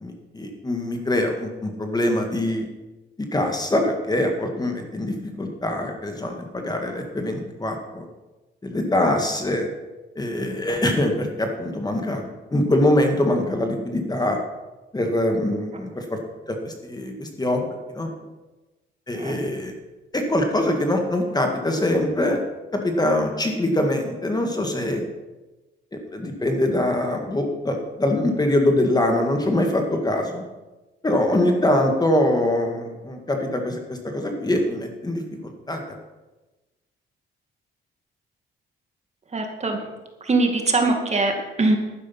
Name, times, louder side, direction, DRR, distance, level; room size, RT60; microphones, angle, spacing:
voice 1, 0.0-2.7 3.3-8.1 8.6-9.7 10.2-14.4 14.9-16.2 16.5-17.7 17.9-18.1 19.1-19.7 20.1-22.4 22.7-25.0 26.1-30.4 31.0-35.8, left 1 dB, 20° left, 3 dB, 2.0 m, -23 dB
voice 2, 39.3-39.8 40.2-41.8, right 2 dB, 35° right, 3 dB, 2.3 m, -22 dB
11.5 x 9.7 x 5.9 m, 1.1 s
cardioid pair, 90°, 20 cm